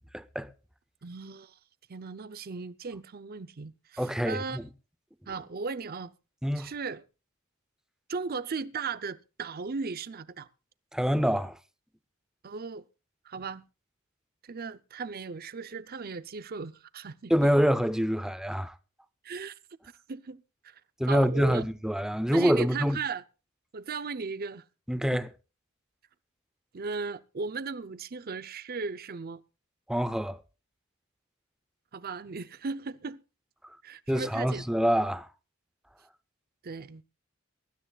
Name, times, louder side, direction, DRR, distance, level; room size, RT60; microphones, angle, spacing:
voice 1, 0.1-0.5 4.0-4.7 6.4-6.7 10.9-11.6 17.3-18.7 21.0-23.0 24.9-25.3 29.9-30.4 34.1-35.3, equal, 5° right, 0.6 m, -26 dB
voice 2, 1.0-1.6 1.9-4.6 5.3-6.1 6.6-7.0 8.1-10.5 12.4-12.8 13.3-13.6 14.4-17.5 19.2-19.5 20.1-20.8 21.1-21.6 22.3-23.2 23.7-24.6 25.1-25.2 26.7-29.4 31.9-33.2 33.8-34.7 36.6-37.0, right 4 dB, 45° right, 0.6 m, -37 dB
23.0 x 12.5 x 2.4 m
head